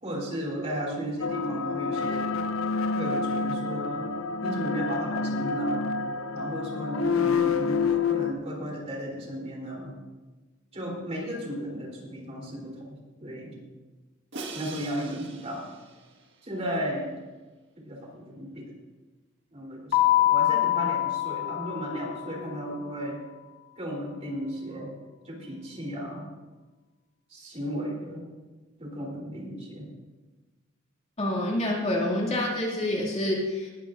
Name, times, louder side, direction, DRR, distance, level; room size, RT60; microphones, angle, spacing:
voice 1, 0.0-2.3 2.9-4.1 4.4-5.9 6.3-10.0 10.7-13.5 14.5-15.6 16.4-17.2 17.8-18.7 19.5-23.2 23.8-24.9 25.2-26.3 27.3-28.3 28.8-29.9, right 1 dB, 30° right, -2 dB, 3.3 m, -34 dB
sound 1, 1.2-8.3, left 5 dB, 90° left, 0.6 m, -28 dB
Crash cymbal, 14.3-16.5, right 3 dB, 60° right, 1.6 m, -42 dB
Keyboard (musical), 19.9-22.5, left 15 dB, 65° left, 1.3 m, -25 dB
voice 2, 31.2-33.7, left 1 dB, 30° left, -3 dB, 2.3 m, -27 dB
19.0 x 13.0 x 2.5 m, 1.3 s
head